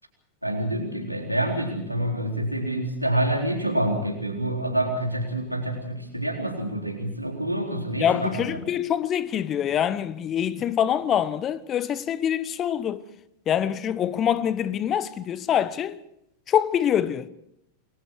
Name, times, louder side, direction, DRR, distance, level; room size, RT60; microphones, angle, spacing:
voice 1, 0.4-8.6, right 1 dB, 90° right, 4.0 m, -27 dB
voice 2, 8.0-13.0 13.5-16.0 16.5-17.3, left 9 dB, 30° left, 0.9 m, -25 dB
28.0 x 21.5 x 4.7 m
figure-of-eight pair, 90°, 0 cm